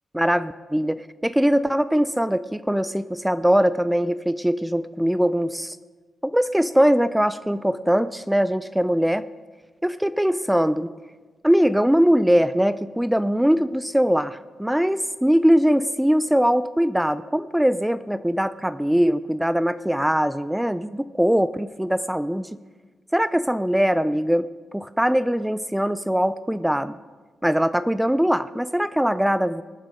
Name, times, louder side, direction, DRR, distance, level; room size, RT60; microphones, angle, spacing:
voice 1, 0.1-5.8 6.2-9.2 9.8-10.9 11.4-22.5 23.1-27.0 27.4-29.6, equal, 5° right, 14 dB, 0.4 m, -21 dB
19.5 x 7.3 x 5.0 m, 1.3 s
supercardioid pair, 60°, 0 cm